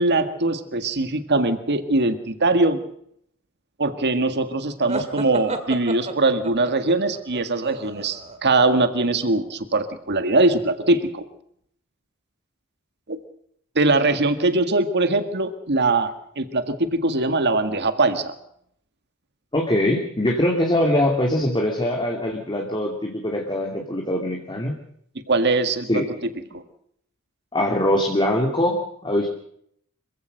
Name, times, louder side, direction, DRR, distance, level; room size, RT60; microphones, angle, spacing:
voice 1, 0.0-2.8 3.8-11.2 13.1-13.2 13.8-18.4 25.3-26.0 26.5-26.6, right 2 dB, 55° right, 9 dB, 1.8 m, -21 dB
sound 1, 4.9-8.6, right 2 dB, 30° right, 1.9 m, -32 dB
voice 2, 19.5-24.7 25.9-26.1 27.5-29.3, left 1 dB, 20° left, 1 dB, 2.5 m, -22 dB
26.0 x 16.0 x 6.6 m, 0.69 s
head